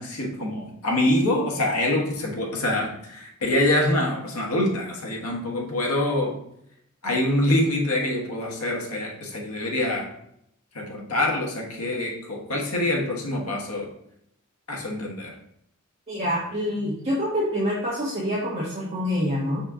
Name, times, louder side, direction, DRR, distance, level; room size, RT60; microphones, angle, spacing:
voice 1, 0.0-6.4 7.0-10.1 10.7-13.9 14.7-15.3, left 1 dB, 85° left, 0 dB, 1.4 m, -25 dB
voice 2, 16.1-19.6, equal, 30° right, -8 dB, 1.6 m, -26 dB
5.8 x 4.3 x 3.8 m, 0.74 s
head